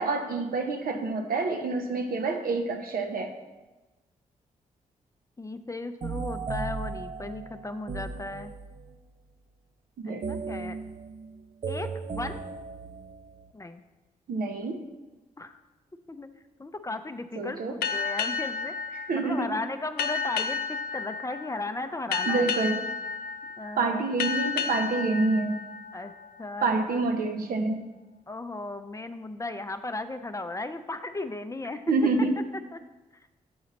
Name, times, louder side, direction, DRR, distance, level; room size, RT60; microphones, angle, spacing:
voice 1, 0.0-3.3 10.0-10.2 14.3-14.8 17.4-17.8 19.1-19.5 22.3-22.8 23.8-25.6 26.6-27.8 31.9-32.3, right 3 dB, 75° right, 5 dB, 0.8 m, -27 dB
voice 2, 5.4-8.5 10.0-10.8 11.7-12.4 13.5-13.8 15.4-15.6 16.1-16.3 16.6-22.5 23.6-24.0 25.9-26.1 26.4-27.0 28.3-31.8 32.7-32.8, left 2 dB, 20° left, 9 dB, 0.5 m, -36 dB
sound 1, 6.0-9.0 10.2-13.5, right 4 dB, 40° right, 0.4 m, -36 dB
sound 2, 17.8-27.0, left 5 dB, 85° left, 0.4 m, -33 dB
8.6 x 4.0 x 4.0 m, 1.1 s
supercardioid pair, 50°, 15 cm